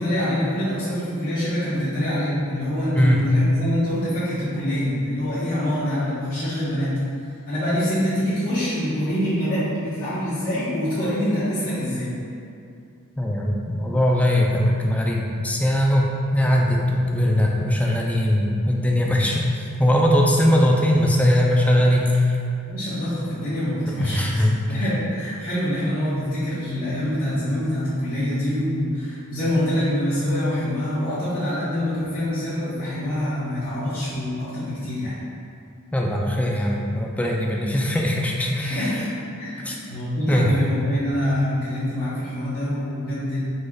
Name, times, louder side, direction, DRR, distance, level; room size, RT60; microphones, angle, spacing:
voice 1, 0.0-6.9 7.5-12.1 22.7-24.4 24.7-35.1 38.6-39.1 39.4-43.4, equal, 40° left, -14 dB, 1.0 m, -25 dB
voice 2, 2.9-3.3 13.2-22.4 23.9-24.6 35.9-38.9 39.6-39.8 40.3-40.5, left 1 dB, 5° left, -1 dB, 0.3 m, -20 dB
4.7 x 4.1 x 2.3 m, 2.5 s
head